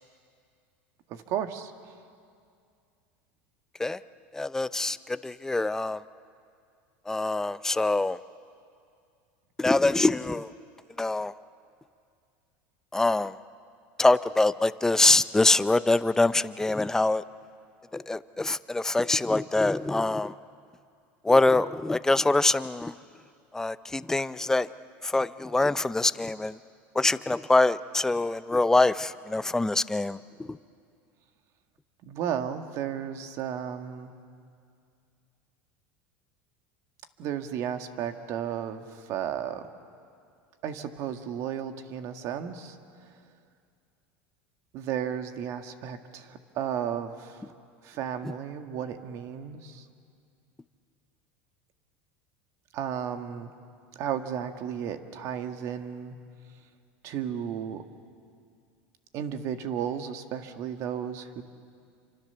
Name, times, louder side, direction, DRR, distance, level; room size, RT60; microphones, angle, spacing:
voice 1, 1.1-1.7 32.1-34.1 37.2-39.7 40.6-42.8 44.7-47.4 47.8-49.8 52.7-53.5 54.0-56.2 57.0-57.8 59.1-61.4, right 9 dB, 55° right, 7 dB, 1.8 m, -33 dB
voice 2, 4.3-6.0 7.1-8.2 9.6-10.5 11.0-11.3 12.9-13.3 14.0-17.2 17.9-20.3 21.2-22.9 23.5-24.7 25.0-26.6 26.9-30.2 30.5-30.6, left 2 dB, 10° left, 14 dB, 0.6 m, -24 dB
28.5 x 25.0 x 7.0 m, 2.3 s
supercardioid pair, 120°, 6 cm